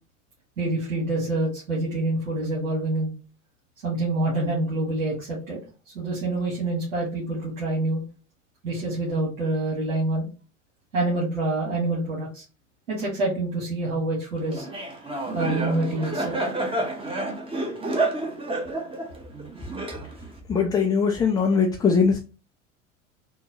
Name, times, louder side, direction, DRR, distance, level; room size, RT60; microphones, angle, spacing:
voice 1, 0.6-3.1 3.8-5.6 5.9-8.0 8.6-10.3 10.9-12.4 12.9-14.7 15.3-16.4, right 2 dB, 80° right, -5 dB, 1.5 m, -26 dB
Laughter, 14.5-20.4, right 2 dB, 15° right, 0.9 m, -29 dB
voice 2, 20.5-22.2, left 5 dB, 10° left, 2 dB, 0.4 m, -21 dB
3.6 x 2.2 x 2.8 m, 0.33 s
hypercardioid pair, 80°, 39 cm